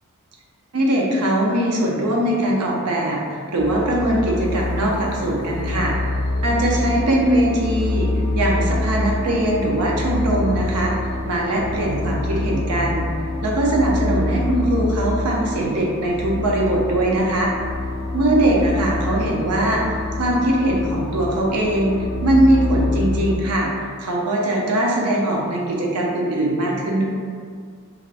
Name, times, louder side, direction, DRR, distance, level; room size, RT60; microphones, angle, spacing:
voice 1, 0.7-6.0 6.4-10.9 11.2-13.1 13.4-17.5 18.1-27.0, right 1 dB, 90° right, -2 dB, 0.6 m, -21 dB
sound 1, 3.6-23.4, left 2 dB, 65° left, 0.3 m, -26 dB
2.4 x 2.4 x 3.2 m, 2.1 s
head